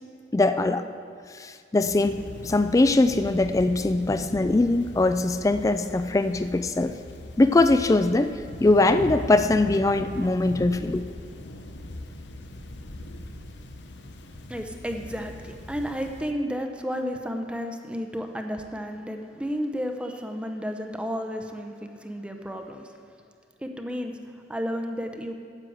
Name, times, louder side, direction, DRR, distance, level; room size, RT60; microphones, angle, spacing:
voice 1, 0.3-0.9 1.4-7.0 7.4-8.3 8.6-11.1, left 2 dB, 20° left, 10 dB, 0.3 m, -22 dB
Thunder / Rain, 1.9-16.3, left 1 dB, 80° left, 0.8 m, -40 dB
voice 2, 14.5-22.9 23.6-24.2 24.5-25.3, equal, 5° right, 4 dB, 0.7 m, -32 dB
9.8 x 7.5 x 7.8 m, 2.2 s
head